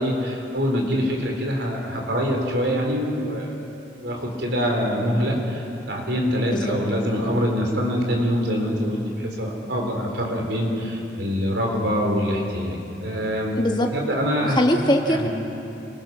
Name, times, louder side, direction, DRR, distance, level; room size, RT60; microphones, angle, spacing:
voice 1, 0.0-3.5 4.0-13.6 13.9-14.6 15.1-15.3, equal, 75° right, 1 dB, 4.0 m, -24 dB
voice 2, 6.5-6.8 13.6-13.9 14.4-15.3, left 1 dB, 25° left, 3 dB, 1.4 m, -21 dB
28.0 x 21.0 x 6.2 m, 2.8 s
head